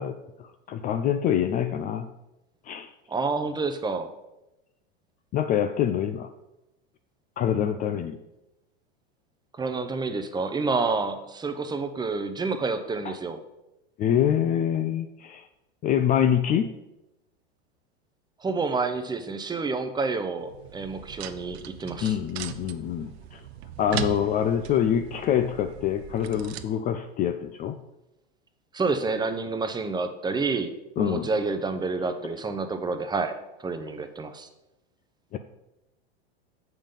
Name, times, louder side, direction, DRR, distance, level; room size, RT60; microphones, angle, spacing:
voice 1, 0.0-2.1 2.6-2.9 5.3-6.3 7.4-8.2 13.0-13.1 14.0-15.5 15.8-16.7 22.0-23.4 23.8-27.8 31.0-31.3 35.3-35.4, left 9 dB, 30° left, 9 dB, 0.3 m, -25 dB
voice 2, 3.1-4.1 9.6-13.4 18.4-22.2 28.7-34.5, right 4 dB, 15° right, 8 dB, 0.7 m, -29 dB
sound 1, 20.4-26.7, right 11 dB, 80° right, 0.7 m, -39 dB
7.3 x 5.7 x 5.2 m, 0.94 s
hypercardioid pair, 110°, 31 cm